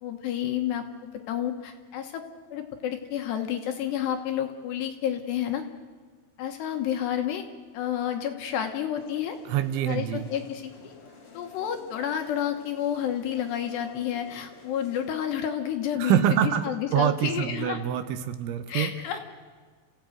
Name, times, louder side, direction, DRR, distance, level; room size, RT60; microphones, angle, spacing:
voice 1, 0.0-2.2 2.5-5.6 6.4-7.4 7.7-9.4 9.8-10.9 11.3-17.8 18.7-19.2, left 10 dB, 70° left, 5 dB, 2.9 m, -30 dB
sound 1, 9.0-15.1, left 3 dB, 35° left, 2.8 m, -50 dB
voice 2, 9.5-10.3 16.0-18.9, right 10 dB, 75° right, 10 dB, 3.1 m, -25 dB
30.0 x 16.0 x 9.1 m, 1.5 s
omnidirectional pair, 5.9 m